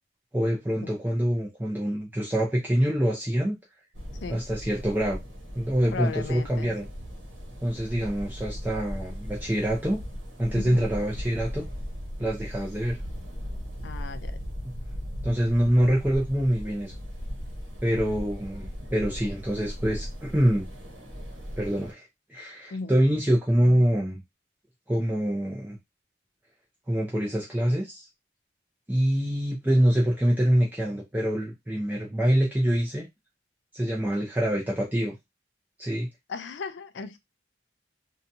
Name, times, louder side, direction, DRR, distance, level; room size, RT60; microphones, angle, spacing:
voice 1, 0.3-3.6 4.3-5.2 5.5-6.9 7.6-10.0 10.4-11.7 12.2-13.0 14.6-14.7 15.2-16.9 17.8-20.7 21.6-24.2 24.9-25.8 26.9-28.1 28.9-33.1 33.7-35.1 35.8-36.1, equal, 10° right, 0.5 m, -25 dB
sound 1, 3.9-21.9, equal, 80° right, 0.9 m, -38 dB
voice 2, 5.9-6.7 10.5-10.9 13.8-14.4 22.7-22.9 36.3-37.2, left 4 dB, 75° left, 0.4 m, -36 dB
2.7 x 2.2 x 2.6 m
head